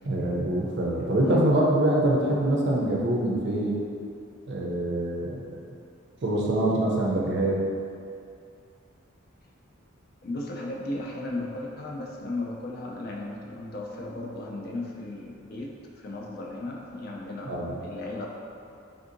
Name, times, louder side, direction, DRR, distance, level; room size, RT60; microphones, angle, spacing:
voice 1, 0.1-3.8 4.5-5.6 6.2-7.6 17.5-17.8, right 1 dB, 55° right, -3 dB, 0.5 m, -25 dB
voice 2, 0.9-1.5 10.2-18.3, left 2 dB, 45° left, -1 dB, 0.4 m, -35 dB
3.5 x 2.6 x 2.5 m, 2.4 s
head